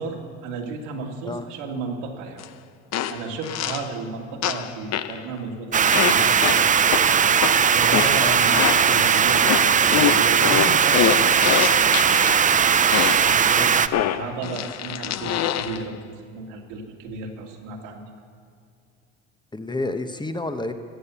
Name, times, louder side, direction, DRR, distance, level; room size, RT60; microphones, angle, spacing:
voice 1, 0.0-2.4 3.1-7.0 7.7-9.6 10.0-11.2 13.2-16.0 16.3-18.1, right 4 dB, 85° right, 1 dB, 2.4 m, -33 dB
sound 1, 2.4-2.5 2.9-3.9 4.4-5.2 5.9-9.0 9.4-12.4 12.9-13.4 13.9-15.8, left 11 dB, 50° left, 0.8 m, -25 dB
sound 2, 5.7-13.9, right 7 dB, 20° right, 0.5 m, -18 dB
voice 2, 19.5-20.7, left 2 dB, 10° left, 8 dB, 0.9 m, -29 dB
16.0 x 9.6 x 7.0 m, 2.3 s
supercardioid pair, 90°, 35 cm